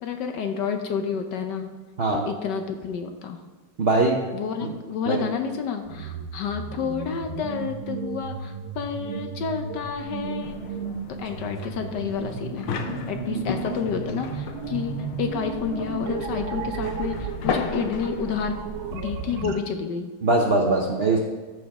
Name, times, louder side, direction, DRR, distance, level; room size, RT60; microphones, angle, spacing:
voice 1, 0.0-1.7 2.3-3.4 4.3-10.6 11.2-12.7 13.1-18.6 18.9-20.1, left 6 dB, 65° left, 6 dB, 1.2 m, -30 dB
voice 2, 3.8-4.2 4.6-4.7 5.1-5.2 20.2-21.2, right 2 dB, 60° right, 0 dB, 0.6 m, -21 dB
sound 1, 5.8-19.6, right 7 dB, 80° right, 1.6 m, -34 dB
sound 2, 10.4-19.4, left 6 dB, 85° left, 1.6 m, -35 dB
14.0 x 5.1 x 3.6 m, 1.4 s
omnidirectional pair, 2.3 m